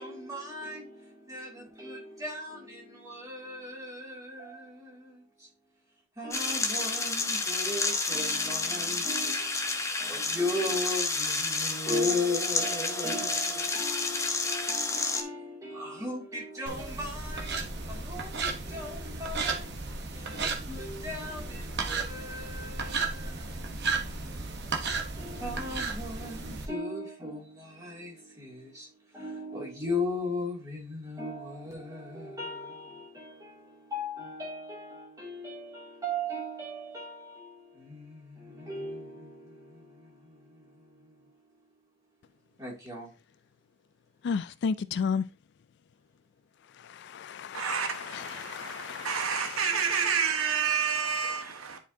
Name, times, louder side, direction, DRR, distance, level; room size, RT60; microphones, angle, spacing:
voice 1, 0.0-5.5 6.2-24.6 25.2-41.4 42.6-43.1, left 1 dB, 15° right, 2.5 m, -37 dB
sound 1, 6.3-15.2, left 3 dB, 15° left, 0.7 m, -30 dB
sound 2, 16.7-26.7, right 4 dB, 50° right, 1.0 m, -34 dB
voice 2, 44.2-45.2 46.8-50.0, left 6 dB, 55° left, 0.3 m, -34 dB
voice 3, 47.5-51.8, right 6 dB, 80° right, 1.2 m, -29 dB
10.0 x 4.6 x 2.7 m
head